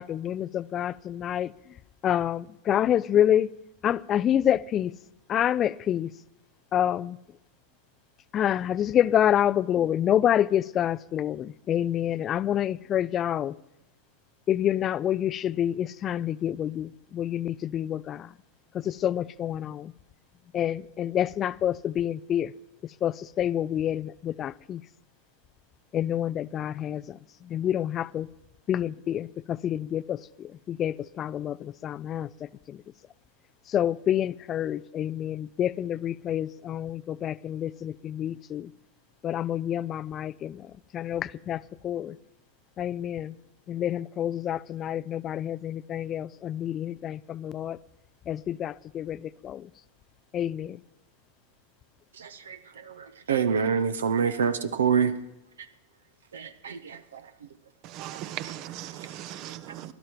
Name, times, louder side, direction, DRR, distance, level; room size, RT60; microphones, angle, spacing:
voice 1, 0.0-1.5 2.0-3.5 3.8-4.9 5.3-6.1 6.7-7.2 8.3-13.5 14.5-18.3 18.7-19.9 20.5-22.5 23.0-24.8 25.9-28.3 28.7-32.8 33.7-38.7 39.2-40.7 40.9-42.2 42.8-43.4 43.7-47.8 48.3-49.7 50.3-50.8, left 10 dB, 30° left, 0.4 m, -28 dB
voice 2, 52.2-52.6 53.3-55.1 56.3-57.0, right 6 dB, 65° right, 0.9 m, -25 dB
voice 3, 57.9-59.9, right 12 dB, 40° right, 0.9 m, -38 dB
17.5 x 12.5 x 4.5 m
figure-of-eight pair, 90°, 0 cm